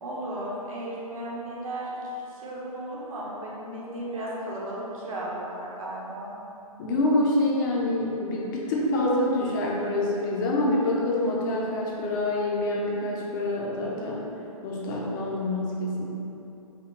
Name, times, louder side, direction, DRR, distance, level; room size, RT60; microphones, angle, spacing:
voice 1, 0.0-6.3, right 1 dB, 65° right, -6 dB, 1.1 m, -35 dB
voice 2, 6.8-14.3 14.6-16.1, left 1 dB, 35° left, -4 dB, 0.5 m, -26 dB
4.9 x 2.2 x 3.2 m, 3.0 s
figure-of-eight pair, 130°, 19 cm